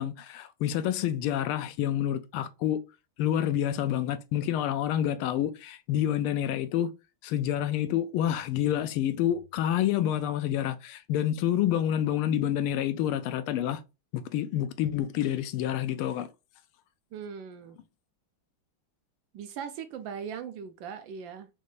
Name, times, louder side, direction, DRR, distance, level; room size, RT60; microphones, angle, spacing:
voice 1, 0.0-2.8 3.2-6.9 7.2-13.8 14.1-16.3, left 11 dB, 85° left, 1.4 m, -28 dB
voice 2, 17.1-17.8 19.3-21.5, right 7 dB, 75° right, 1.2 m, -39 dB
5.4 x 2.5 x 3.2 m
omnidirectional pair, 2.3 m